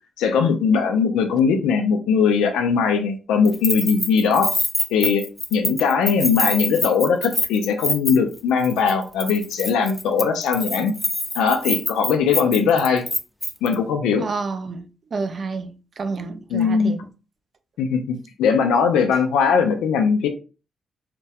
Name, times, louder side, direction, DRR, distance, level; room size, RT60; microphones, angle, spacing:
voice 1, 0.2-4.5 4.9-5.2 5.5-10.9 11.3-13.1 13.6-14.3 16.5-17.1 17.8-20.3, left 6 dB, 75° left, 0.4 m, -20 dB
Keys jangling, 3.4-8.4 8.6-8.9 9.2-13.7, left 1 dB, 10° left, 0.5 m, -25 dB
voice 2, 14.2-14.8 15.1-17.0, right 4 dB, 55° right, 0.4 m, -29 dB
2.2 x 2.1 x 2.7 m
hypercardioid pair, 40°, 0 cm